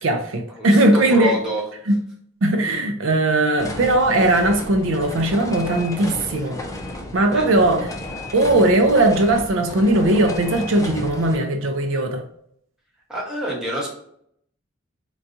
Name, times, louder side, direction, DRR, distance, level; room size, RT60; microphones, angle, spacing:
voice 1, 0.0-1.4 1.9-2.0 2.4-6.6 7.1-7.9 8.3-12.2, right 1 dB, 80° right, 0.5 m, -18 dB
voice 2, 0.6-1.6 7.3-7.5 13.1-13.9, equal, 5° right, 1.0 m, -26 dB
sound 1, 3.6-11.4, left 1 dB, 15° left, 0.4 m, -33 dB
3.9 x 2.3 x 2.6 m
head